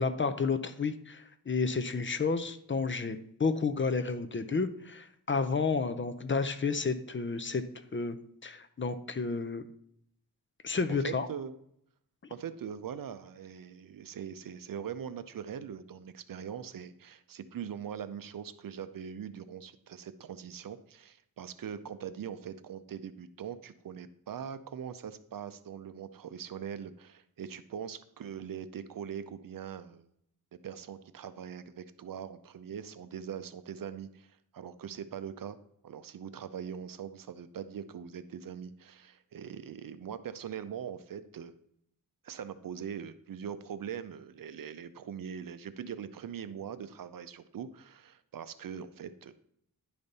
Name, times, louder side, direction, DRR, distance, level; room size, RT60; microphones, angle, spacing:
voice 1, 0.0-7.6 7.9-8.2 8.4-9.6 10.6-11.3, left 4 dB, 35° left, 9 dB, 0.5 m, -31 dB
voice 2, 11.0-11.6 12.3-30.1 30.6-35.6 35.8-41.5 42.2-49.3, right 8 dB, 65° right, 13 dB, 0.6 m, -42 dB
10.5 x 5.2 x 4.1 m, 0.72 s
wide cardioid pair, 135°, 37 cm